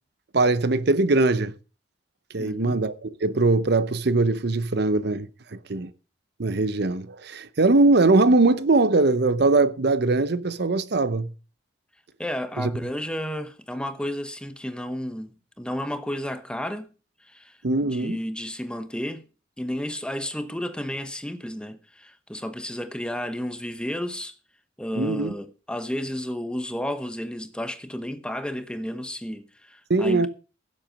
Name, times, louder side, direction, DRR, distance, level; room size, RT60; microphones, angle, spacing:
voice 1, 0.3-1.5 2.3-5.9 6.4-11.3 12.6-12.7 17.6-18.2 25.0-25.3 29.9-30.3, right 3 dB, 60° right, 0.8 m, -21 dB
voice 2, 2.4-2.8 12.2-16.9 17.2-19.3 19.6-24.3 24.8-30.3, equal, 5° left, 0.9 m, -32 dB
16.0 x 7.6 x 5.2 m
head